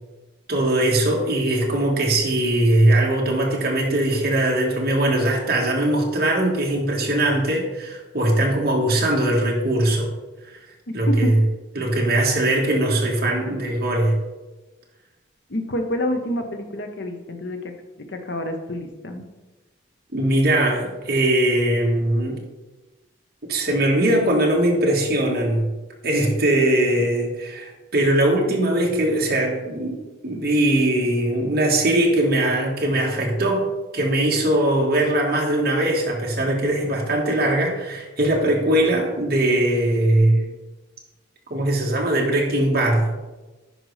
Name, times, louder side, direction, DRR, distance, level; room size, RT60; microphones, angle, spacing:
voice 1, 0.5-10.1 10.9-11.4 11.7-14.2 20.1-22.4 23.5-25.7 26.0-30.0 30.2-33.7 33.9-40.5 41.5-43.1, right 1 dB, 50° right, -1 dB, 1.5 m, -20 dB
voice 2, 10.9-11.3 15.5-17.7 18.1-19.2, left 1 dB, 60° left, 5 dB, 0.8 m, -28 dB
10.0 x 5.2 x 3.3 m, 1.1 s
head